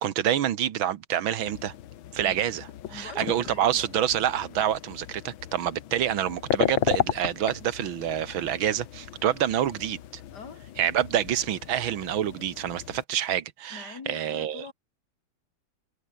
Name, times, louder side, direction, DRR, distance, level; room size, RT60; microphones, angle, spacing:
voice 1, 0.0-1.7 2.1-10.0 10.8-14.7, right 10 dB, 80° right, 2.0 m, -27 dB
sound 1, 1.4-13.0, left 11 dB, 80° left, 1.8 m, -35 dB
voice 2, 2.9-3.8 10.3-10.6 13.7-14.7, left 5 dB, 55° left, 2.9 m, -43 dB
omnidirectional pair, 2.1 m